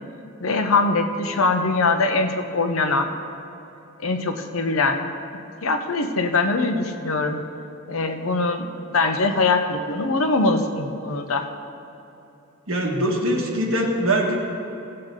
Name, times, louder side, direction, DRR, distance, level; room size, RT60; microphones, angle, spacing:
voice 1, 0.4-3.1 4.0-5.1 5.6-7.4 7.9-11.4, left 3 dB, 75° left, 6 dB, 0.8 m, -22 dB
voice 2, 12.7-14.4, right 1 dB, 70° right, 0 dB, 1.6 m, -22 dB
17.0 x 7.7 x 3.8 m, 2.9 s
head